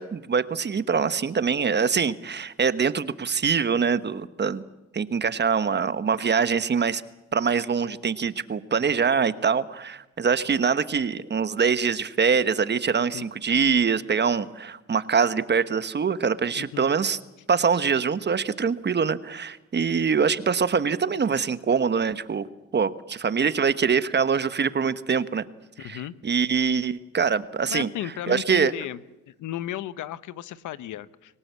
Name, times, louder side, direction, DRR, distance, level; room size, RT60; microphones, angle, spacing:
voice 1, 0.0-4.6 4.9-7.0 7.3-17.2 17.5-22.5 22.7-25.4 25.8-27.9 28.3-28.7, right 6 dB, 35° right, 14 dB, 1.2 m, -24 dB
voice 2, 16.6-16.9 25.8-26.1 27.7-29.0 29.3-31.4, left 12 dB, 80° left, 16 dB, 1.0 m, -35 dB
25.0 x 18.0 x 8.2 m, 1.0 s
cardioid pair, 90°, 30 cm